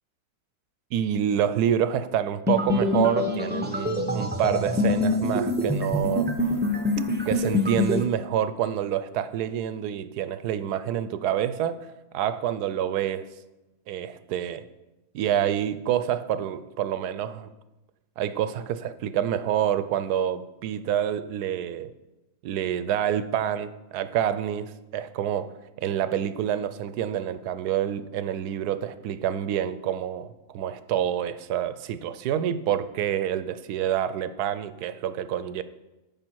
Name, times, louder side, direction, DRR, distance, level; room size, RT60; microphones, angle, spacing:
voice 1, 0.9-6.3 7.2-11.8 12.1-13.3 13.9-14.6 15.1-17.5 18.2-21.9 22.4-35.6, right 10 dB, 85° right, 13 dB, 1.1 m, -27 dB
sound 1, 2.5-8.0, left 2 dB, 10° right, 0.6 m, -25 dB
13.0 x 5.4 x 4.6 m, 1.0 s
omnidirectional pair, 1.6 m